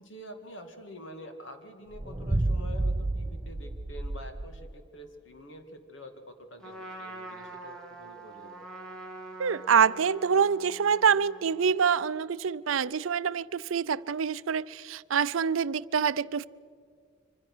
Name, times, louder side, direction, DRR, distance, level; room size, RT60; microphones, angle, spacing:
voice 1, 0.0-8.6, left 1 dB, 70° left, 2.2 m, -47 dB
sound 1, 1.9-4.7, right 2 dB, 25° right, 0.6 m, -31 dB
Trumpet, 6.6-11.8, right 2 dB, 5° left, 2.6 m, -45 dB
voice 2, 9.4-16.5, right 6 dB, 80° right, 0.5 m, -26 dB
26.0 x 25.0 x 6.2 m
head